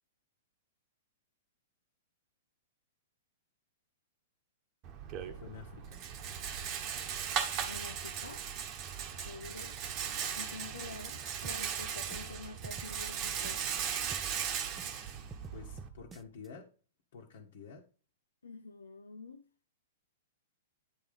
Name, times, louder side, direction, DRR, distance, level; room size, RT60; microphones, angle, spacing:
Rattle, 4.8-15.9, right 8 dB, 40° right, 1.3 m, -38 dB
voice 1, 5.3-6.0 15.5-16.7 17.1-17.8, left 6 dB, 60° left, 1.4 m, -49 dB
voice 2, 7.7-8.4 9.2-9.7 10.4-13.7 14.1-14.2 18.4-19.4, left 3 dB, 85° left, 0.6 m, -47 dB
sound 1, 11.4-13.8 14.1-16.5, right 5 dB, 15° right, 0.5 m, -50 dB
9.6 x 3.6 x 5.3 m
figure-of-eight pair, 110°, 0 cm